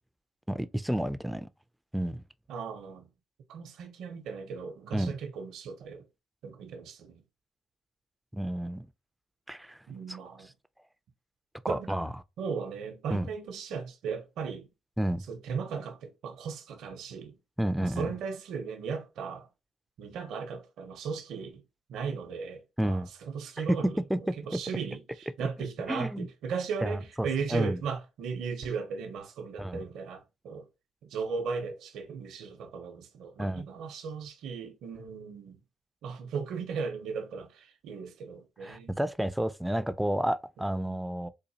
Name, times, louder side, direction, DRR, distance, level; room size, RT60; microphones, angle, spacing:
voice 1, 0.5-1.5 1.9-2.2 4.9-5.1 8.3-8.9 9.5-9.8 11.7-12.1 13.1-13.3 15.0-15.2 17.6-18.1 22.8-23.1 24.1-24.2 25.9-26.3 26.8-27.8 29.6-29.8 33.4-33.6 38.6-41.3, right 1 dB, 5° right, 0.4 m, -30 dB
voice 2, 2.5-3.1 3.5-6.1 6.4-7.2 9.9-10.5 11.7-11.9 12.4-14.7 15.3-17.4 17.8-19.5 20.0-21.6 21.9-30.7 31.0-35.6 36.0-39.0 40.6-41.0, right 5 dB, 80° right, 0.8 m, -37 dB
4.0 x 2.6 x 2.8 m
supercardioid pair, 65°, 0 cm